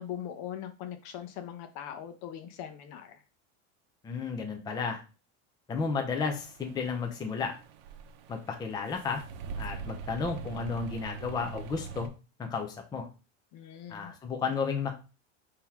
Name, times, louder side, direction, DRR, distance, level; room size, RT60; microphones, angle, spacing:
voice 1, 0.0-3.2 13.5-14.1, left 10 dB, 60° left, 8 dB, 0.8 m, -41 dB
voice 2, 4.0-5.0 5.7-7.5 8.3-9.2 9.6-12.1 12.4-13.1 13.9-14.9, left 5 dB, 10° left, 3 dB, 0.5 m, -33 dB
sound 1, 6.2-12.1, right 6 dB, 70° right, 0.7 m, -43 dB
3.7 x 2.9 x 4.5 m, 0.32 s
supercardioid pair, 145°, 33 cm